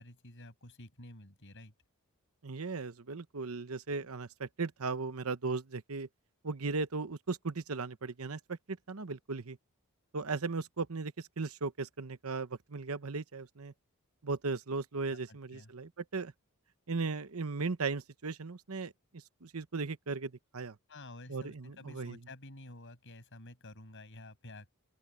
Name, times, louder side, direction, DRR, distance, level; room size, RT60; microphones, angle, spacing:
voice 1, 0.0-1.7 15.1-15.7 20.9-24.7, left 2 dB, 55° left, 5.9 m, -51 dB
voice 2, 2.4-6.1 6.4-9.6 10.1-13.7 14.2-16.3 16.9-20.8 21.3-22.2, right 4 dB, 70° right, 1.0 m, -37 dB
open air
head